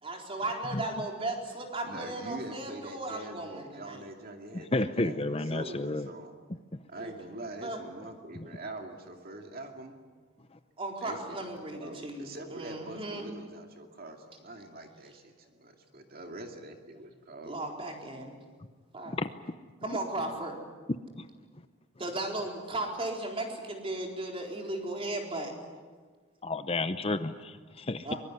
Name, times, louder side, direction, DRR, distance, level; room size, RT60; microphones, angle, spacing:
voice 1, 0.0-4.0 6.9-7.1 7.6-7.8 10.8-13.3 17.4-18.4 18.9-19.2 19.8-20.5 22.0-25.5 28.0-28.2, right 2 dB, 25° right, 4.3 m, -36 dB
voice 2, 1.8-6.3 6.9-10.0 11.0-11.5 11.7-17.6, right 2 dB, 45° right, 2.4 m, -44 dB
voice 3, 4.7-6.1 19.1-19.3 26.4-28.1, left 2 dB, 30° left, 0.7 m, -31 dB
23.5 x 23.0 x 9.8 m
head